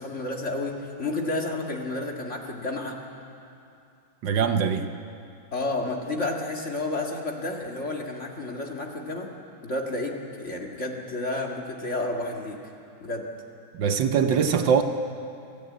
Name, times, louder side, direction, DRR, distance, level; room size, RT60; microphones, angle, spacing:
voice 1, 0.0-3.0 5.5-9.3 9.6-12.6 13.0-13.3, left 2 dB, 35° left, 1 dB, 2.2 m, -31 dB
voice 2, 4.2-4.9 13.7-14.8, right 7 dB, 70° right, 8 dB, 1.5 m, -22 dB
25.0 x 15.5 x 8.6 m, 2.6 s
omnidirectional pair, 2.2 m